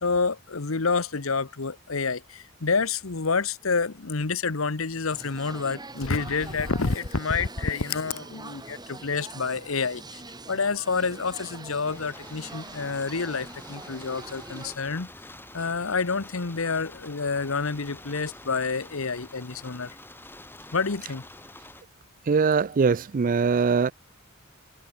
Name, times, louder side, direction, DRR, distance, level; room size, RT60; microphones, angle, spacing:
voice 1, 0.0-10.2 10.5-15.1 15.5-19.9 20.7-21.2, left 4 dB, 75° left, 1.1 m, -28 dB
sound 1, 5.1-14.8, right 2 dB, 20° right, 4.8 m, -44 dB
sound 2, 11.9-21.8, left 2 dB, 10° left, 1.9 m, -47 dB
voice 2, 22.3-23.9, right 5 dB, 40° right, 0.4 m, -22 dB
head